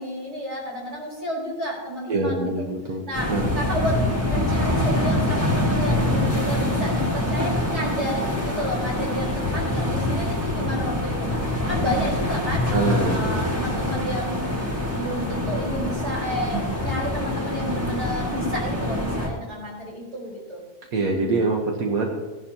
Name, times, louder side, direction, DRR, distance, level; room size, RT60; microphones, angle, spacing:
voice 1, 0.0-2.5 3.1-4.0 4.3-11.4 11.7-14.3 15.0-20.6, equal, 50° right, -5 dB, 5.0 m, -31 dB
voice 2, 2.1-3.0 3.3-3.4 4.0-4.1 12.7-13.2 20.9-22.1, right 3 dB, 75° right, 0 dB, 1.6 m, -24 dB
sound 1, 3.1-19.3, left 1 dB, 10° right, 1.7 m, -25 dB
16.5 x 11.0 x 2.9 m, 1.2 s
omnidirectional pair, 1.5 m